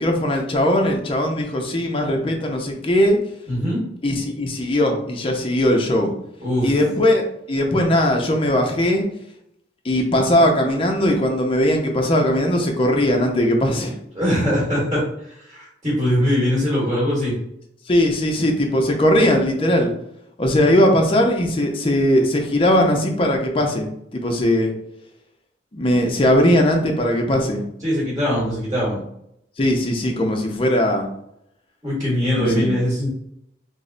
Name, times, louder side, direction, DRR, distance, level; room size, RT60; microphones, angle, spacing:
voice 1, 0.0-3.2 4.0-6.1 6.6-9.0 9.8-13.9 17.9-19.9 20.4-23.9 24.1-24.7 25.7-27.6 29.6-31.1 32.4-32.7, left 1 dB, 30° left, 2 dB, 0.5 m, -19 dB
voice 2, 3.5-3.8 6.4-6.7 14.1-15.0 15.3-17.3 27.8-29.0 31.8-33.1, equal, 20° right, -7 dB, 1.2 m, -21 dB
3.1 x 2.0 x 3.8 m, 0.76 s
head